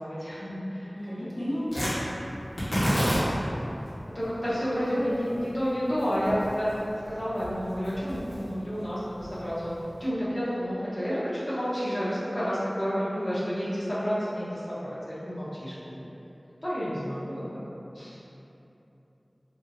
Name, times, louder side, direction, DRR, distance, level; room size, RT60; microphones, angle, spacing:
voice 1, 0.0-1.7 4.1-9.7 10.0-16.0 16.6-18.2, equal, 30° left, -11 dB, 0.9 m, -30 dB
voice 2, 0.9-2.2 3.9-4.2 4.9-5.1, equal, 55° left, -11 dB, 0.9 m, -34 dB
Tearing, 1.7-10.0, equal, 85° left, 1.1 m, -32 dB
3.6 x 2.9 x 2.6 m, 3.0 s
wide cardioid pair, 50°, 0 cm